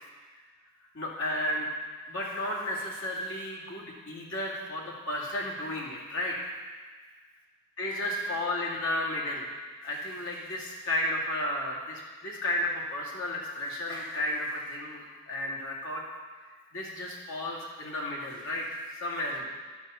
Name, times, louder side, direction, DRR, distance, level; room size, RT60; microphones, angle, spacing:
voice 1, 0.9-1.7 2.1-6.6 7.8-9.5 9.8-16.0 16.4-19.5, left 1 dB, 65° left, -4 dB, 2.4 m, -33 dB
11.0 x 5.8 x 6.8 m, 1.4 s
head